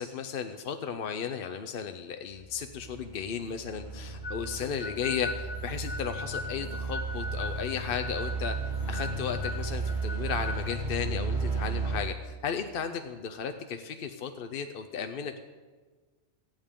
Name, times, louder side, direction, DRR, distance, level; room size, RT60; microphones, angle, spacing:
voice 1, 0.0-8.6 8.9-15.4, left 7 dB, 55° left, 7 dB, 0.8 m, -35 dB
sound 1, 2.3-12.0, right 3 dB, 55° right, 2.1 m, -34 dB
sound 2, 4.2-10.8, left 2 dB, 30° left, 1.9 m, -39 dB
23.5 x 8.9 x 3.7 m, 1.4 s
omnidirectional pair, 1.3 m